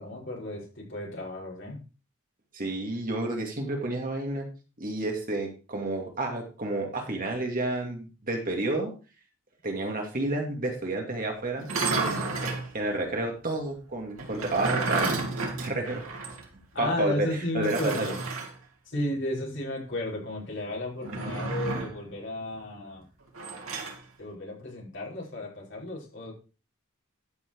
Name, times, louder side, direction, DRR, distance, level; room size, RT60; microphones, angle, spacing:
voice 1, 0.0-1.8 16.7-18.2 18.9-23.0 24.2-26.3, left 1 dB, 55° left, -3 dB, 5.7 m, -33 dB
voice 2, 2.5-4.5 4.8-8.9 9.6-11.7 12.4-15.2 15.6-16.0 16.8-17.3 17.5-18.1, right 2 dB, 40° right, 2 dB, 2.4 m, -30 dB
sound 1, 11.6-12.7 14.2-16.4 16.7-16.8 17.6-18.5 21.0-22.0 23.3-24.0, right 3 dB, 70° right, 3.0 m, -31 dB
13.0 x 6.3 x 4.7 m, 0.34 s
head